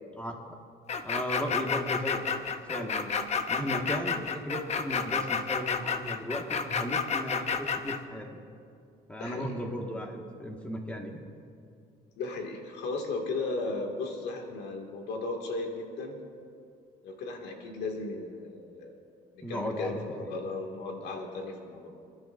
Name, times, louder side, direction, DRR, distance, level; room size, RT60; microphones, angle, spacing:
voice 1, 0.2-0.6 1.0-3.1 3.5-8.4 9.1-11.2 19.4-20.3, equal, 5° left, 1 dB, 1.7 m, -36 dB
sound 1, 0.9-8.0, left 6 dB, 40° left, 0.8 m, -30 dB
voice 2, 9.2-9.5 12.2-16.2 17.0-19.0 19.3-21.9, left 3 dB, 80° left, 2 dB, 2.1 m, -36 dB
28.5 x 11.5 x 2.6 m, 2.4 s
cardioid pair, 110°, 17 cm